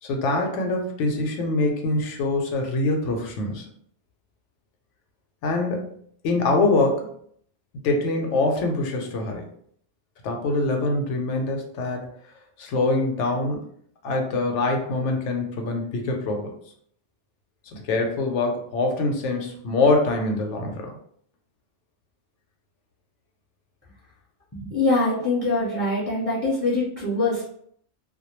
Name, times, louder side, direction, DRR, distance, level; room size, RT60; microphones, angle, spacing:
voice 1, 0.0-3.6 5.4-6.0 6.2-7.1 7.8-9.5 10.2-12.1 12.6-13.6 14.0-16.5 17.7-20.9, left 2 dB, 85° left, 2 dB, 0.9 m, -24 dB
voice 2, 24.5-27.4, left 2 dB, 10° left, -7 dB, 0.7 m, -23 dB
2.2 x 2.1 x 3.0 m, 0.64 s
omnidirectional pair, 1.2 m